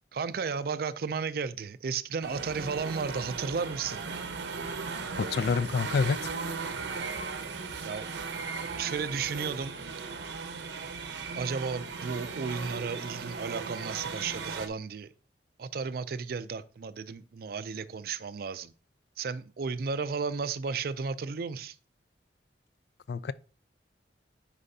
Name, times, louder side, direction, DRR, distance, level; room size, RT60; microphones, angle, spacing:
voice 1, 0.1-4.0 7.8-8.1 8.8-9.7 11.4-15.1 15.6-18.7 19.2-21.8, right 5 dB, 55° right, 0.4 m, -33 dB
sound 1, 2.2-14.7, right 4 dB, 85° right, 0.8 m, -37 dB
voice 2, 5.2-6.3 23.1-23.3, left 5 dB, 65° left, 0.3 m, -28 dB
9.9 x 4.9 x 2.7 m
head